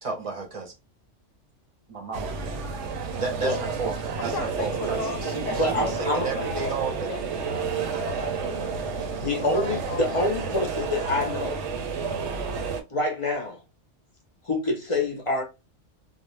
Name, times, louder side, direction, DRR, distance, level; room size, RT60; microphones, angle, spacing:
voice 1, 0.0-0.7 1.9-2.3 3.1-7.1, right 4 dB, 35° right, 0.6 m, -33 dB
sound 1, 2.1-12.8, right 5 dB, 70° right, 0.9 m, -31 dB
voice 2, 4.3-6.8 7.1-7.3 7.5-10.5 10.8-11.1 12.2-12.3, left 5 dB, 90° left, 1.0 m, -37 dB
voice 3, 5.6-6.3 9.2-11.6 12.9-13.6 14.4-15.4, left 2 dB, 35° left, 0.6 m, -26 dB
2.5 x 2.1 x 3.1 m
omnidirectional pair, 1.3 m